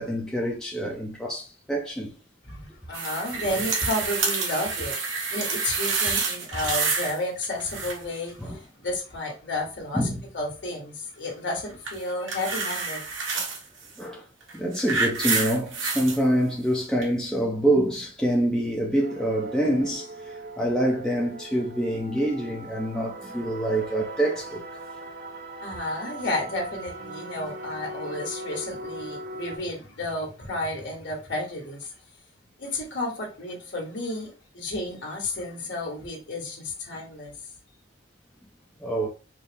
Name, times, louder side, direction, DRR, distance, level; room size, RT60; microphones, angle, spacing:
voice 1, 0.0-2.2 3.5-3.6 8.4-8.6 9.9-10.2 14.0-14.3 14.5-24.8 38.8-39.1, right 1 dB, 5° left, 0.5 m, -26 dB
voice 2, 2.5-5.0 5.3-10.0 10.3-13.0 25.6-31.9 32.6-37.3, left 1 dB, 70° left, 1.5 m, -32 dB
sound 1, 2.9-7.2 7.4-8.2 11.8-13.6 14.4-16.2 17.0-17.1, right 4 dB, 90° right, 1.1 m, -28 dB
sound 2, 19.0-29.6, right 2 dB, 50° right, 0.5 m, -40 dB
4.4 x 2.0 x 3.4 m
head